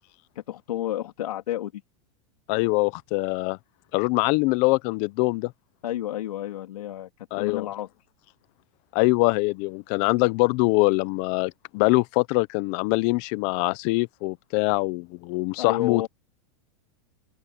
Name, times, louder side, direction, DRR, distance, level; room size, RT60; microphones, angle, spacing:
voice 1, 0.3-1.8 5.8-7.9 15.6-16.1, left 13 dB, 90° left, 2.8 m, -31 dB
voice 2, 2.5-3.6 3.9-5.5 7.3-7.7 8.9-16.1, left 25 dB, 35° left, 0.7 m, -23 dB
open air
supercardioid pair, 160°, 18 cm